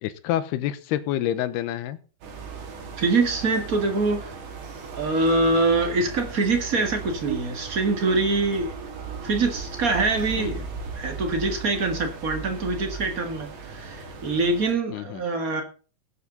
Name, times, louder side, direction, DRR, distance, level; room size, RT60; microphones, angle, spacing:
voice 1, 0.0-2.0 10.4-10.5 14.9-15.2, left 12 dB, 90° left, 2.9 m, -28 dB
sound 1, 2.2-14.7, right 5 dB, 75° right, 4.4 m, -37 dB
voice 2, 3.0-4.3 4.9-8.7 9.2-10.6 10.9-15.6, right 3 dB, 45° right, 1.1 m, -24 dB
18.5 x 8.5 x 3.9 m
omnidirectional pair, 4.6 m